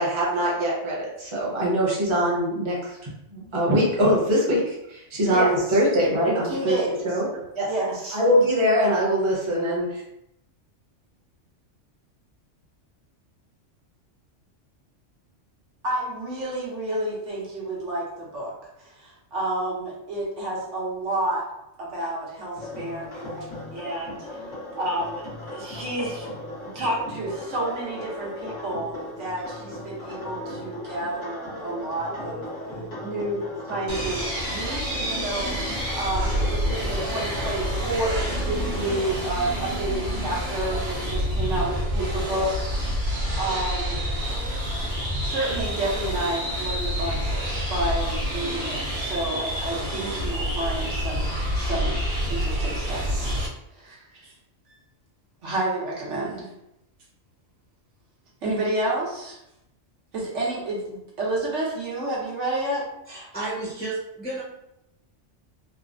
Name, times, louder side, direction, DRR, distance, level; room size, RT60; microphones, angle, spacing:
voice 1, 0.0-3.0 3.3-6.8 7.0-7.2 7.5-7.7 8.1-10.0, equal, 25° right, -5 dB, 0.8 m, -22 dB
voice 2, 5.3-5.8 6.2-7.1 7.7-8.2 15.8-18.5 18.8-21.4 21.8-24.2 24.7-26.3 26.6-32.5 33.0-44.0 44.5-44.6 45.2-47.4 47.7-53.4 53.7-54.3 54.7-54.8 55.4-56.5 58.4-59.4 60.1-62.8, right 1 dB, 70° right, -5 dB, 1.2 m, -30 dB
sound 1, 22.5-39.0, left 1 dB, 75° left, 1.4 m, -37 dB
sound 2, 33.9-53.5, equal, 55° right, 0.9 m, -28 dB
voice 3, 63.1-64.4, right 2 dB, 10° left, -7 dB, 0.7 m, -32 dB
3.3 x 2.0 x 2.5 m, 0.83 s
omnidirectional pair, 1.3 m